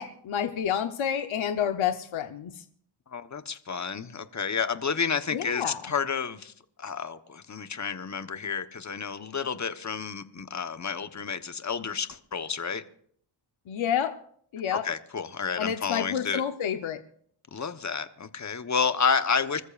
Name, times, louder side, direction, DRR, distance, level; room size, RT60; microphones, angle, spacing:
voice 1, 0.0-2.6 5.3-5.9 13.7-14.2 14.5-14.8 15.6-17.0, left 9 dB, 70° left, 1.0 m, -29 dB
voice 2, 3.1-6.5 6.8-12.8 14.7-16.4 17.5-19.6, left 6 dB, 35° left, 1.1 m, -30 dB
25.5 x 14.0 x 2.5 m
cardioid pair, 60°, 49 cm